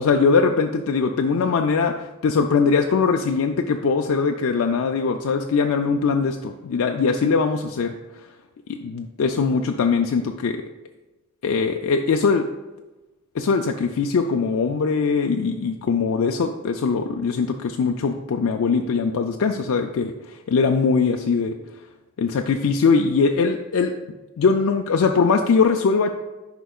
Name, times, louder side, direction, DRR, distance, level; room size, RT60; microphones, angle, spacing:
voice 1, 0.0-8.3 8.7-10.6 11.4-12.5 13.3-21.6 22.2-23.9 24.4-26.1, left 5 dB, 70° left, 4 dB, 0.4 m, -21 dB
10.0 x 5.2 x 2.4 m, 1.1 s
head